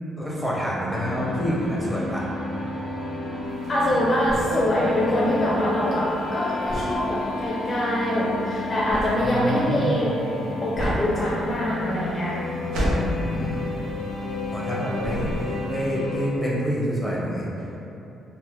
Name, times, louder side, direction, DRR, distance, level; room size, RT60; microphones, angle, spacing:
voice 1, 0.2-2.3 9.2-10.1 12.8-13.6 14.5-17.5, equal, ahead, -6 dB, 0.8 m, -28 dB
sound 1, 0.9-16.3, left 2 dB, 60° right, 1.0 m, -31 dB
sound 2, 3.5-14.7 15.0-15.8, equal, 80° right, 0.6 m, -32 dB
voice 2, 3.7-10.1 10.6-12.4, left 1 dB, 30° left, -5 dB, 0.4 m, -24 dB
3.3 x 2.0 x 3.0 m, 2.9 s
cardioid pair, 90°, 0 cm